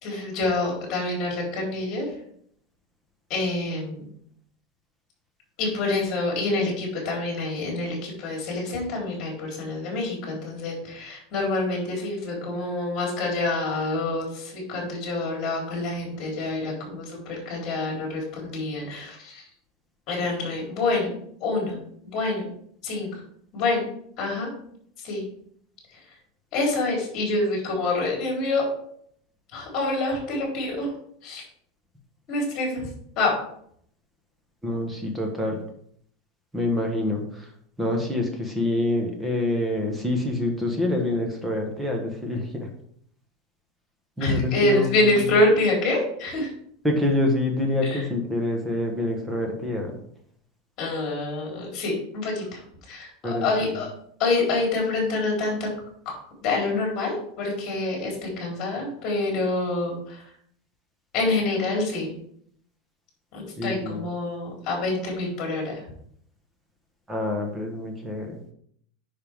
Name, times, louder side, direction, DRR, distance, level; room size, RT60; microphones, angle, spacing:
voice 1, 0.0-2.1 3.3-4.1 5.6-19.4 20.1-21.8 22.0-22.5 22.8-23.1 23.5-23.9 24.2-24.5 25.0-25.2 26.5-28.7 29.5-30.9 31.2-31.4 32.3-32.9 33.2-33.3 44.2-46.5 47.8-48.0 50.8-52.6 52.9-53.9 54.2-55.7 56.1-56.2 56.4-60.2 61.1-62.1 63.3-65.8, left 2 dB, 30° left, -2 dB, 3.7 m, -26 dB
voice 2, 34.6-35.6 36.5-37.5 37.8-42.7 44.2-45.3 46.8-50.0 53.2-53.5 63.6-64.0 67.1-68.5, left 1 dB, 5° right, 2 dB, 1.3 m, -26 dB
9.8 x 5.7 x 3.6 m, 0.65 s
supercardioid pair, 180°, 0 cm